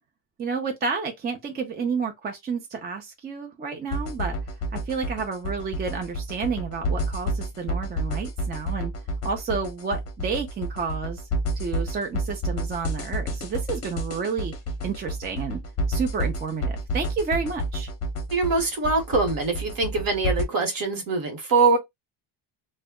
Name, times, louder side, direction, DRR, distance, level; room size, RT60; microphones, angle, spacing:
voice 1, 0.4-4.3 4.7-8.9 9.2-11.2 11.6-14.5 14.8-15.6 15.9-17.9, right 5 dB, 25° right, 0.3 m, -30 dB
sound 1, 3.9-20.4, equal, 35° left, 0.7 m, -29 dB
voice 2, 18.3-21.8, right 3 dB, 50° right, 1.1 m, -23 dB
2.2 x 2.1 x 3.5 m
cardioid pair, 140°, 46 cm